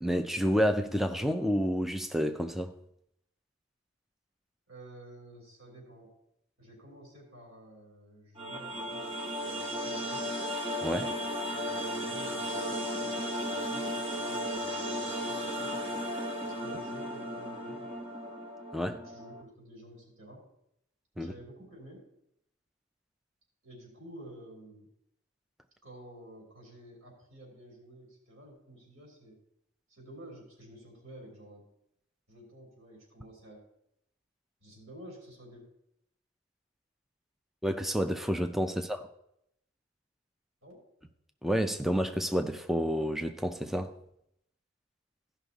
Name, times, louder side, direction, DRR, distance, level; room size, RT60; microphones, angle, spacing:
voice 1, 0.0-2.7 10.8-11.1 18.7-18.9 21.2-21.3 37.6-39.0 41.4-43.9, equal, ahead, 0.4 m, -29 dB
voice 2, 4.7-6.1 6.6-10.4 11.5-16.1 16.4-17.9 18.8-20.4 21.1-22.1 23.6-24.9 25.8-29.4 29.9-31.7 32.3-33.6 34.6-35.6 38.7-38.9 40.6-40.8, right 1 dB, 75° right, 3.4 m, -51 dB
sound 1, 8.4-19.4, equal, 25° right, 1.5 m, -35 dB
14.5 x 5.7 x 4.0 m
head